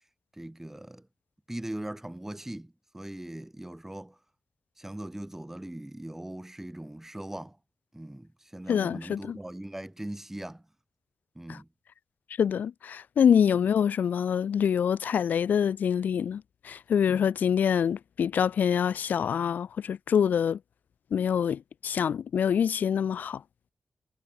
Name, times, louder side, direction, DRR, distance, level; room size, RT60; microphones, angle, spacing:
voice 1, 0.4-1.1 1.5-4.2 4.8-7.6 7.9-10.6 11.3-11.7, right 1 dB, 10° right, 5.2 m, -40 dB
voice 2, 8.7-9.4 11.5-11.6 12.4-20.6 21.1-23.4, left 8 dB, 90° left, 0.5 m, -25 dB
cardioid pair, 75°, 3 cm